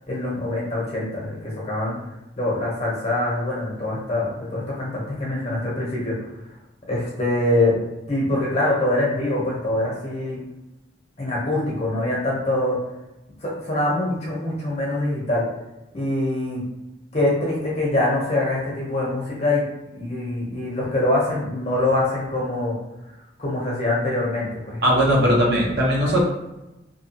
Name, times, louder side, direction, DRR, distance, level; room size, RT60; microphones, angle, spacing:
voice 1, 0.1-2.0 2.4-6.2 6.9-7.7 8.1-10.4 11.2-12.8 13.4-15.5 15.9-16.6 17.1-19.6 19.9-22.8 23.4-24.8, left 1 dB, 35° left, -5 dB, 0.8 m, -24 dB
voice 2, 24.8-26.2, equal, 60° right, -4 dB, 0.8 m, -18 dB
2.8 x 2.3 x 2.8 m, 0.96 s
head